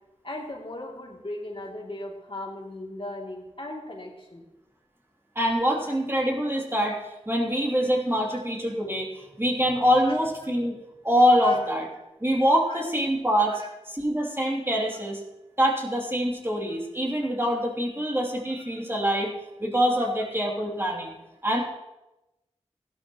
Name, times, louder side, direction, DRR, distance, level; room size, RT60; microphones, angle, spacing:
voice 1, 0.2-4.4 10.0-10.2 11.4-11.6 12.7-12.8 13.5-13.7 20.0-20.1, left 2 dB, 50° left, -2 dB, 2.9 m, -36 dB
voice 2, 5.3-7.0 7.3-10.7 11.0-11.8 12.2-13.6 13.9-15.2 15.6-19.3 19.6-21.2 21.4-21.6, equal, 20° right, -2 dB, 2.9 m, -24 dB
15.0 x 12.0 x 3.1 m, 0.95 s
cardioid pair, 45°, 12 cm